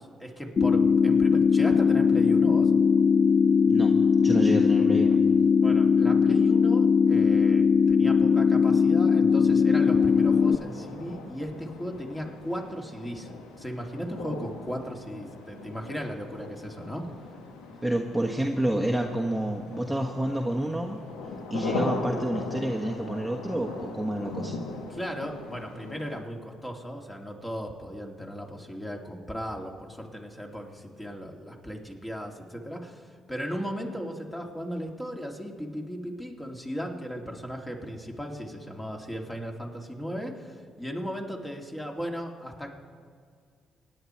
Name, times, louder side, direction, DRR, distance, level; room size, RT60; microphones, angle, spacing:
voice 1, 0.0-2.7 5.6-13.3 13.5-17.1 24.9-42.7, equal, 15° left, 1 dB, 2.8 m, -36 dB
sound 1, 0.6-10.6, left 6 dB, 50° left, 0.4 m, -20 dB
voice 2, 4.2-5.2 17.8-21.0 21.5-24.5, right 1 dB, 5° right, 0 dB, 1.3 m, -29 dB
sound 2, 9.8-26.2, left 3 dB, 80° left, 1.5 m, -39 dB
26.0 x 10.0 x 4.6 m, 2.1 s
hypercardioid pair, 50°, 0 cm